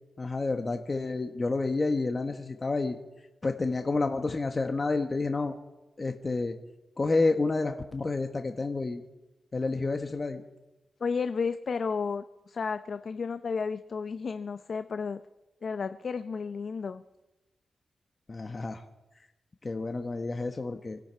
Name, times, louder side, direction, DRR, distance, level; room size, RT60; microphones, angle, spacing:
voice 1, 0.2-3.0 3.4-5.5 6.0-6.5 7.0-9.0 9.5-10.4 18.3-18.8 19.6-21.0, left 3 dB, 35° left, 5 dB, 1.3 m, -29 dB
voice 2, 11.0-15.2 15.6-17.0, left 5 dB, 60° left, 10 dB, 0.7 m, -32 dB
26.0 x 11.5 x 4.6 m, 1.0 s
cardioid pair, 65°, 0 cm